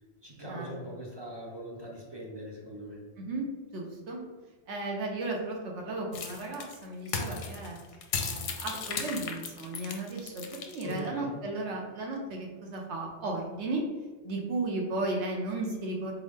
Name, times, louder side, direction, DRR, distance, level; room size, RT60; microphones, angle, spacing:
voice 1, 0.2-3.0 10.8-11.3, right 1 dB, 30° right, -3 dB, 0.6 m, -41 dB
voice 2, 3.7-4.2 4.7-7.8 8.2-13.8 14.2-16.1, right 2 dB, 70° right, 0 dB, 1.1 m, -35 dB
sound 1, 6.1-11.1, left 5 dB, 85° left, 1.0 m, -35 dB
4.0 x 3.7 x 3.5 m, 1.3 s
omnidirectional pair, 1.2 m